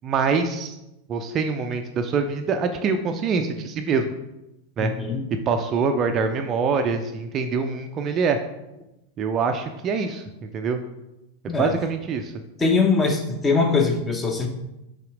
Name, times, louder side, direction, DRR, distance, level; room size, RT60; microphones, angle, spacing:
voice 1, 0.0-0.8 1.1-4.1 4.8-4.9 5.5-8.4 9.2-10.8 11.4-12.3, right 5 dB, 30° right, 6 dB, 0.4 m, -24 dB
voice 2, 4.8-5.2 11.5-11.7 12.6-14.5, left 4 dB, 15° left, 4 dB, 0.9 m, -22 dB
5.6 x 3.5 x 4.9 m, 0.93 s
figure-of-eight pair, 90°, 0 cm